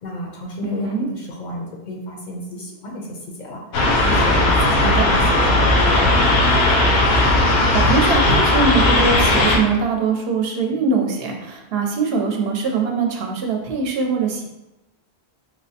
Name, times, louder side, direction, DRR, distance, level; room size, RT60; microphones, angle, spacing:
voice 1, 0.0-3.6 4.0-6.6, left 1 dB, 55° left, -1 dB, 0.6 m, -31 dB
voice 2, 0.6-1.1 4.8-5.1 7.5-14.4, right 4 dB, 75° right, 1 dB, 0.8 m, -22 dB
sound 1, 3.7-9.6, left 1 dB, 80° left, 0.9 m, -16 dB
4.3 x 2.0 x 2.7 m, 0.97 s
omnidirectional pair, 1.1 m